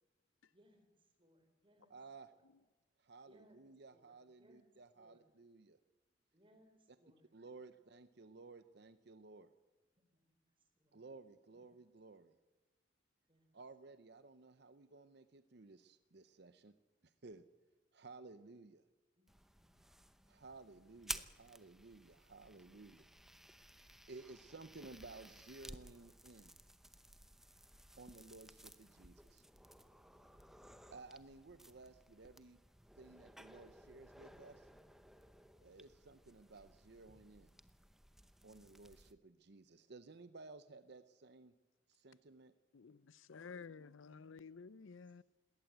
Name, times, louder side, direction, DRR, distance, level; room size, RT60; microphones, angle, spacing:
voice 1, 0.5-0.9 1.2-1.9 3.3-3.6 3.9-4.1 4.4-4.7 4.9-5.2 6.3-7.2 10.1-10.2 10.8-11.0 11.5-11.7 13.3-13.5 19.2-19.3 19.6-19.7, equal, 25° right, 4.2 m, -69 dB
voice 2, 1.9-2.3 3.0-5.8 6.9-7.0 7.3-9.5 10.9-12.4 13.5-16.7 17.0-17.4 17.9-18.8 20.3-23.1 23.7-26.6 28.0-29.5 30.9-32.6 32.9-34.7 35.6-37.6 38.4-41.5 41.9-42.5, right 3 dB, 60° right, 0.7 m, -56 dB
sound 1, 19.3-39.1, right 1 dB, ahead, 0.8 m, -55 dB
voice 3, 42.7-45.2, left 5 dB, 90° left, 0.6 m, -53 dB
20.5 x 18.0 x 8.0 m
head